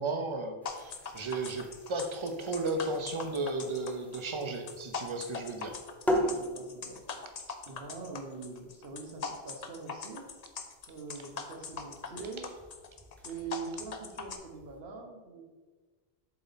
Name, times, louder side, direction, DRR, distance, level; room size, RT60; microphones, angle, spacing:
voice 1, 0.0-5.7, right 2 dB, 35° right, 6 dB, 0.6 m, -34 dB
sound 1, 0.6-14.8, equal, ahead, 0.8 m, -41 dB
sound 2, 0.7-14.4, left 5 dB, 50° left, 0.6 m, -41 dB
voice 2, 6.2-7.0 7.7-10.2 10.9-12.5 13.2-15.4, right 4 dB, 65° right, 2 dB, 1.3 m, -43 dB
7.4 x 4.1 x 4.1 m, 1.3 s
omnidirectional pair, 1.1 m